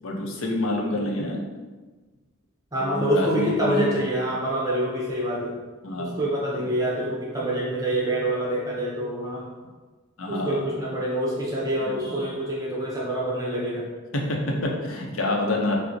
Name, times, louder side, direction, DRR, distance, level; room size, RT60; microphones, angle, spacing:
voice 1, 0.0-1.4 2.7-4.0 5.8-6.3 10.2-10.6 11.8-12.0 14.1-15.8, left 1 dB, 70° left, 0 dB, 0.6 m, -27 dB
voice 2, 2.7-5.6 6.0-9.5 10.3-13.8, right 1 dB, 15° right, -4 dB, 0.6 m, -26 dB
5.6 x 2.0 x 2.6 m, 1.3 s
head